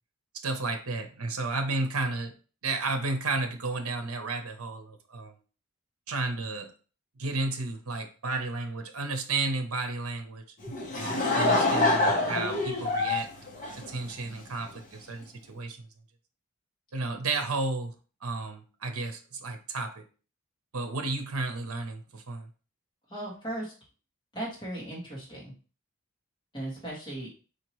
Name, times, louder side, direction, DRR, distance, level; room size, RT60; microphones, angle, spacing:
voice 1, 0.4-2.3 2.6-5.3 6.1-6.7 7.2-10.4 10.9-13.3 13.7-15.8 16.9-17.9 18.2-20.0 20.7-22.5, right 3 dB, 80° right, 6 dB, 0.8 m, -32 dB
Laughter / Crowd, 10.6-14.4, left 2 dB, 40° left, 1.0 m, -26 dB
voice 2, 23.1-23.7 24.3-25.5 26.5-27.3, right 1 dB, 20° left, -6 dB, 1.8 m, -37 dB
5.0 x 2.9 x 3.0 m, 0.37 s
head